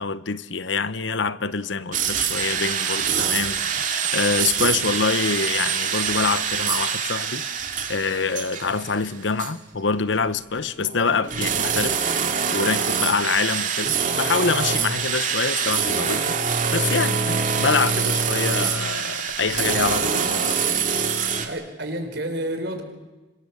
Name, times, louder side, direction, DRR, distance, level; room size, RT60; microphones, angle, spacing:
voice 1, 0.0-12.1 12.5-16.4 16.7-20.8, left 4 dB, 90° left, 1.0 m, -25 dB
sound 1, 1.9-9.1 9.4-9.5 10.5-21.5, right 6 dB, 45° right, 2.4 m, -25 dB
voice 2, 21.4-22.8, right 1 dB, 65° right, 4.6 m, -29 dB
26.0 x 24.0 x 7.2 m
head